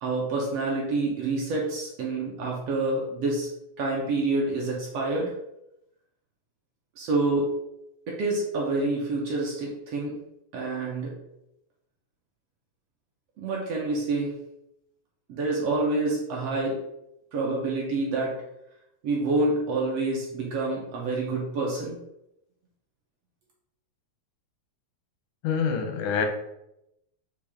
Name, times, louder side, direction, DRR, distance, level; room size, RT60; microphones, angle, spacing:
voice 1, 0.0-3.5 3.8-5.3 7.0-7.5 8.1-10.2 10.5-11.1 13.4-14.3 15.3-16.8 17.3-18.4 19.0-22.0, right 2 dB, 70° right, -2 dB, 1.6 m, -27 dB
voice 2, 25.4-26.3, left 6 dB, 90° left, 4 dB, 2.2 m, -26 dB
6.5 x 2.4 x 3.5 m, 0.84 s
omnidirectional pair, 3.4 m